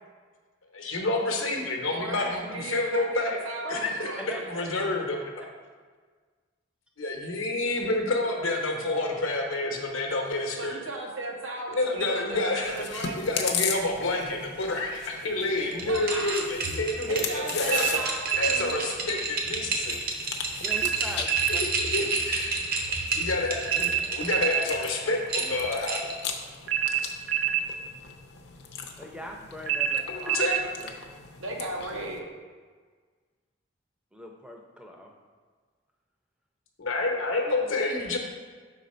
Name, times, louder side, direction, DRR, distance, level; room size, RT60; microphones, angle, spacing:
voice 1, 0.7-3.4 3.7-4.1 4.5-5.4 7.0-10.7 11.7-18.0 18.3-20.0 21.5-22.5 23.1-26.0 30.0-30.6 36.8-38.2, left 2 dB, 85° left, 2 dB, 1.0 m, -29 dB
voice 2, 1.9-5.0 10.6-13.2 15.6-16.4 17.1-19.0 31.4-32.2, right 2 dB, 85° right, 0 dB, 1.0 m, -36 dB
Chewing mastication, 12.6-32.2, left 6 dB, 55° left, 0.5 m, -39 dB
sound 1, 15.7-24.9 25.3-26.3, right 3 dB, 45° right, 0.7 m, -31 dB
voice 3, 16.3-16.8 20.6-21.6 21.9-22.1 29.0-31.0 34.1-35.1, equal, 5° right, 1 dB, 0.5 m, -41 dB
sound 2, 17.7-18.7 20.7-21.6 23.7-24.7 26.7-27.7 29.7-30.7, right 9 dB, 70° right, 0.4 m, -26 dB
5.7 x 4.0 x 4.3 m, 1.5 s
head